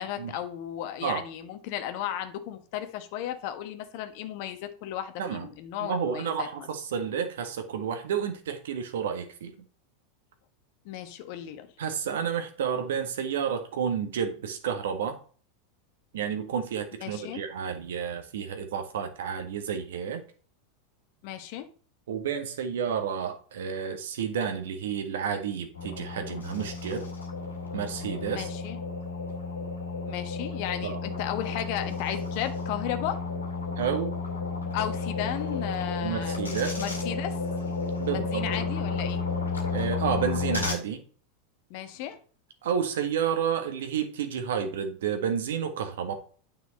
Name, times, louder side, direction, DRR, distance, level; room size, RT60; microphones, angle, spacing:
voice 1, 0.0-6.7 10.8-11.7 17.0-17.4 21.2-21.7 28.3-28.8 30.1-33.2 34.7-37.4 38.1-39.2 41.7-42.2, left 11 dB, 55° left, 1.2 m, -35 dB
voice 2, 5.8-9.5 11.8-15.2 16.1-20.2 22.1-27.1 27.7-28.5 30.8-31.0 33.8-34.1 36.0-36.8 38.0-38.5 39.7-41.0 42.6-46.1, right 7 dB, 70° right, 1.5 m, -30 dB
sound 1, 25.7-40.7, left 4 dB, 85° left, 2.1 m, -32 dB
9.5 x 5.8 x 4.1 m
figure-of-eight pair, 90°, 0 cm